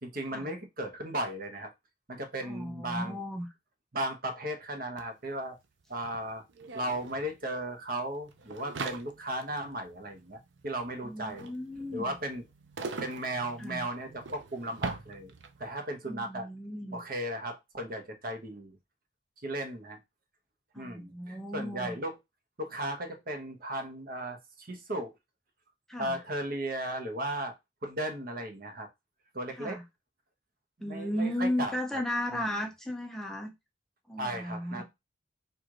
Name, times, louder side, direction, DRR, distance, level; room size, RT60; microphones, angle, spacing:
voice 1, 0.0-1.7 2.1-3.2 3.9-5.6 5.9-6.4 6.7-11.5 11.9-12.4 13.0-15.3 15.6-16.5 16.9-18.8 19.4-20.0 20.7-22.2 22.6-25.1 26.0-27.5 27.8-28.9 29.3-29.8 30.8-31.7 32.3-32.5 34.2-34.8, right 1 dB, 55° right, 1.0 m, -36 dB
voice 2, 2.4-3.5 11.0-12.2 13.6-13.9 16.1-17.0 20.7-22.0 25.9-26.2 29.5-29.8 30.8-33.5 34.1-34.8, left 1 dB, ahead, 0.7 m, -35 dB
sound 1, 5.0-5.1 5.3-15.7, right 4 dB, 85° right, 0.6 m, -43 dB
4.7 x 2.6 x 3.8 m
head